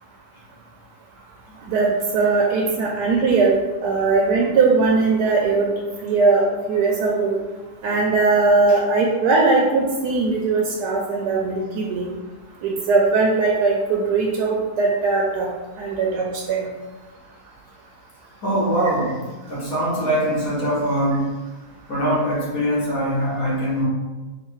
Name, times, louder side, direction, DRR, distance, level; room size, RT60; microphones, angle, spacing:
voice 1, 1.7-5.7 6.0-7.3 7.8-12.1 12.6-15.5 15.8-16.6, right 3 dB, 85° right, -1 dB, 1.2 m, -19 dB
voice 2, 18.4-19.2 19.5-21.3 21.9-23.9, equal, 60° left, -7 dB, 1.6 m, -22 dB
3.9 x 2.4 x 4.4 m, 1.3 s
omnidirectional pair, 1.7 m